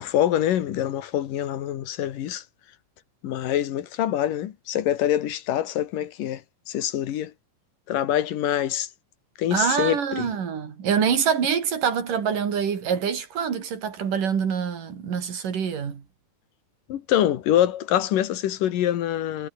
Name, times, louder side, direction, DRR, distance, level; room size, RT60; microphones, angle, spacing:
voice 1, 0.0-2.4 3.2-7.3 7.9-8.9 9.4-10.3 16.9-19.5, left 11 dB, 85° left, 3.2 m, -25 dB
voice 2, 9.5-16.0, right 7 dB, 80° right, 4.8 m, -25 dB
omnidirectional pair, 3.7 m